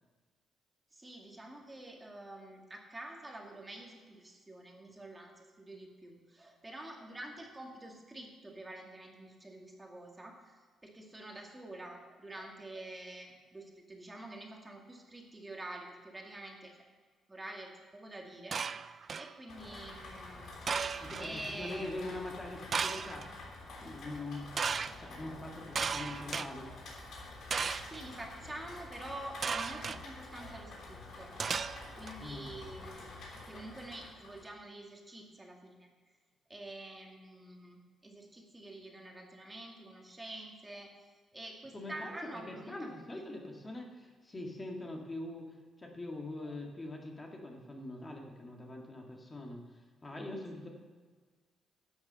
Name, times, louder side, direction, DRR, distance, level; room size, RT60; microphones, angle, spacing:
voice 1, 0.9-10.6 10.8-16.8 17.3-18.6 19.2-20.8 21.2-21.9 27.9-31.3 32.0-33.0 33.3-35.9 36.5-40.9 41.3-43.5, right 1 dB, 15° right, 1 dB, 2.0 m, -47 dB
sound 1, 18.5-19.3 20.7-21.3 22.7-23.3 24.6-24.9 25.8-26.5 27.5-28.0 29.4-30.0 31.4-32.1, right 5 dB, 45° right, 0.4 m, -35 dB
Rain, 19.5-34.5, left 2 dB, 70° left, 3.2 m, -48 dB
voice 2, 21.0-23.3 23.8-24.5 25.0-26.7 32.2-32.5 41.7-50.7, left 2 dB, 25° left, 0 dB, 2.0 m, -43 dB
11.5 x 7.2 x 6.8 m, 1.5 s
cardioid pair, 90°, 0 cm